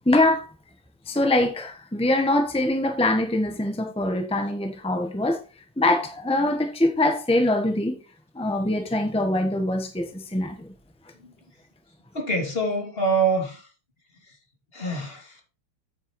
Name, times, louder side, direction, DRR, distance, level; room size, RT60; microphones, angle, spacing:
voice 1, 0.1-0.5 1.1-5.4 5.8-8.0 8.3-10.7, left 1 dB, 5° left, 0.4 m, -23 dB
voice 2, 12.1-13.6 14.7-15.4, right 3 dB, 25° left, 2.6 m, -25 dB
9.4 x 8.6 x 3.1 m
omnidirectional pair, 2.4 m